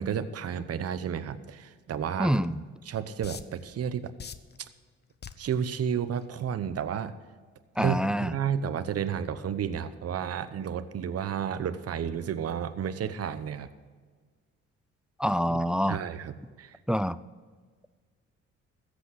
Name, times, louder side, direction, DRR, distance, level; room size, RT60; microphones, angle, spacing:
voice 1, 0.0-2.4 2.8-4.1 4.6-4.7 5.4-7.1 7.8-13.7 15.9-16.8, right 8 dB, 55° right, 11 dB, 0.9 m, -32 dB
voice 2, 2.2-2.6 7.8-8.3 15.2-16.0 16.9-17.2, equal, 5° right, 17 dB, 0.4 m, -26 dB
sound 1, 2.4-2.5 3.2-3.6 4.2-4.6 5.2-5.5 6.2-6.4, left 7 dB, 35° left, 0.7 m, -41 dB
14.0 x 8.3 x 6.3 m, 1.5 s
cardioid pair, 90°, 30 cm